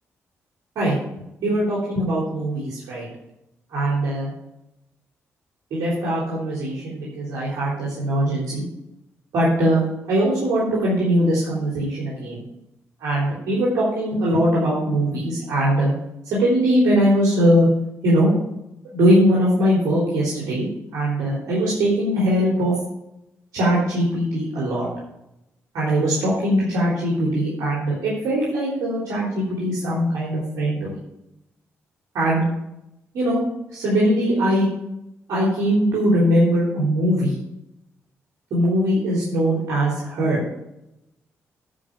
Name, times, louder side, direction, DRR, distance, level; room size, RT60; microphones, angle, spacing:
voice 1, 1.4-3.1 3.7-4.3 5.7-8.6 9.3-9.8 10.1-12.4 13.0-15.9 16.3-17.7 18.0-18.3 18.9-20.7 20.9-22.7 23.5-24.9 25.7-31.0 32.1-32.4 33.1-33.4 33.7-34.7 35.3-37.3 38.5-40.4, equal, 80° right, -6 dB, 3.5 m, -21 dB
10.5 x 5.1 x 7.1 m, 0.87 s
supercardioid pair, 60°, 6 cm